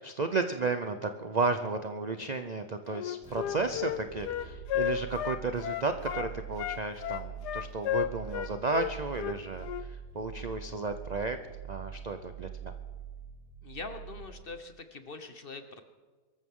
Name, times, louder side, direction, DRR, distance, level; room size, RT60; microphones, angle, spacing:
voice 1, 0.0-11.4 11.7-12.7, right 3 dB, 65° right, 7 dB, 0.4 m, -33 dB
Wind instrument woodwind instrument, 2.9-6.3 6.6-9.9, left 11 dB, 80° left, 1.2 m, -33 dB
sound 1, 3.2-14.7, right 8 dB, 5° right, 4.7 m, -45 dB
voice 2, 13.6-15.8, left 3 dB, 40° left, 8 dB, 1.0 m, -43 dB
24.0 x 14.0 x 3.7 m, 1.4 s
omnidirectional pair, 1.8 m